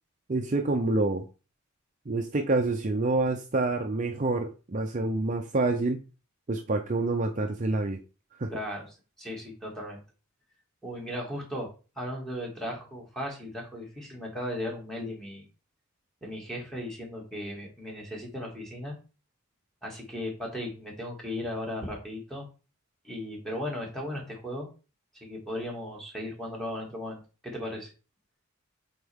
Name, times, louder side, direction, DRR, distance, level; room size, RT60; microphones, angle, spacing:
voice 1, 0.3-1.2 2.1-6.0 6.5-8.0 8.4-8.5, right 2 dB, 35° right, 4 dB, 0.6 m, -27 dB
voice 2, 8.5-10.0 10.8-11.7 12.0-15.5 16.2-18.9 19.8-22.5 23.0-24.7 25.1-27.9, left 1 dB, ahead, -1 dB, 2.2 m, -36 dB
8.1 x 4.4 x 3.6 m, 0.34 s
head